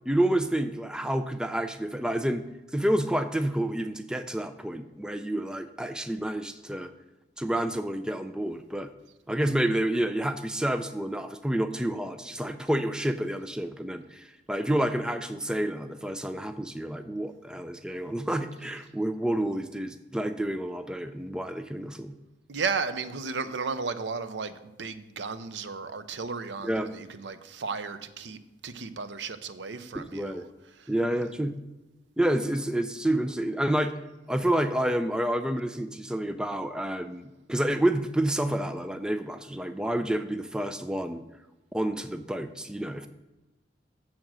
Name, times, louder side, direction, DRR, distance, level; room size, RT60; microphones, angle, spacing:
voice 1, 0.1-2.4 2.7-6.9 7.4-8.9 9.3-22.1 26.6-26.9 29.9-30.5 30.9-31.5 32.2-33.9 34.3-41.2 41.7-43.1, right 1 dB, 5° right, 0.3 m, -29 dB
voice 2, 22.5-30.4 30.8-30.9, right 5 dB, 85° right, 0.6 m, -34 dB
7.2 x 6.5 x 6.1 m
head